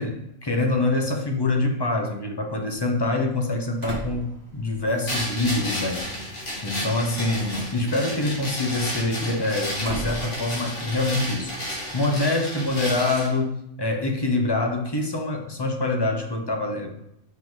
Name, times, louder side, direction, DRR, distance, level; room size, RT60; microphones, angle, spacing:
voice 1, 0.0-6.3 6.6-11.5 11.9-17.1, left 2 dB, 25° left, 3 dB, 0.7 m, -25 dB
Slam, 2.7-12.2, right 2 dB, 55° right, 1.6 m, -41 dB
sound 1, 5.1-13.3, equal, 70° left, 2.3 m, -32 dB
5.6 x 5.0 x 3.8 m, 0.82 s
omnidirectional pair, 1.3 m